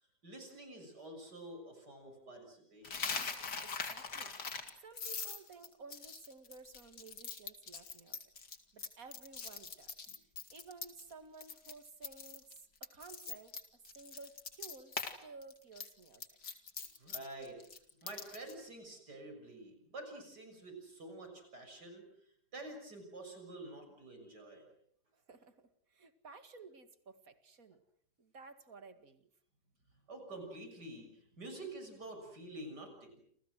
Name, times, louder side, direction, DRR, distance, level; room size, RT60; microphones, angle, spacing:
voice 1, 0.2-3.1 10.1-10.2 17.0-17.6 18.0-22.1 22.5-24.7 30.1-33.2, right 2 dB, 90° right, 5 dB, 7.5 m, -48 dB
Coin (dropping), 2.8-11.1 11.4-11.7 12.0-15.1 15.4-18.5, left 5 dB, 90° left, 3.1 m, -42 dB
voice 2, 3.6-4.4 4.8-8.2 8.7-10.0 10.5-16.2 25.1-27.8 28.2-29.3, right 4 dB, 55° right, 9 dB, 2.6 m, -55 dB
29.5 x 28.0 x 6.4 m, 0.66 s
omnidirectional pair, 1.7 m